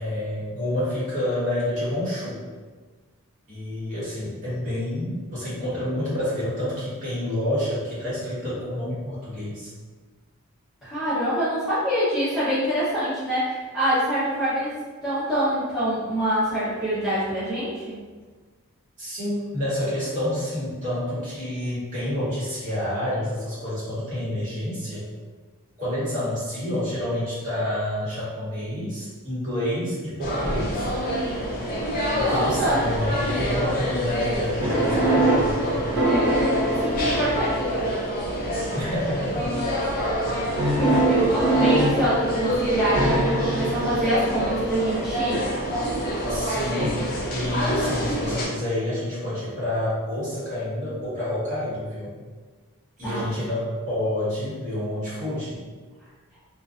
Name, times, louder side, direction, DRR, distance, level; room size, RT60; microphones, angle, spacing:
voice 1, 0.0-2.4 3.5-9.7 19.0-25.1 25.8-30.9 32.2-35.8 38.7-39.5 46.3-47.0 47.3-52.2 53.0-55.6, left 1 dB, 35° right, -10 dB, 1.0 m, -28 dB
voice 2, 10.8-17.9 32.2-32.8 36.7-37.9 41.1-45.5 53.0-53.3, right 1 dB, ahead, -15 dB, 0.6 m, -25 dB
sound 1, 30.2-48.5, equal, 40° left, 0.5 m, -27 dB
sound 2, 34.6-38.0 38.7-39.2 40.6-44.7 46.8-46.9, right 1 dB, 75° right, 0.7 m, -24 dB
2.5 x 2.2 x 2.4 m, 1.4 s
head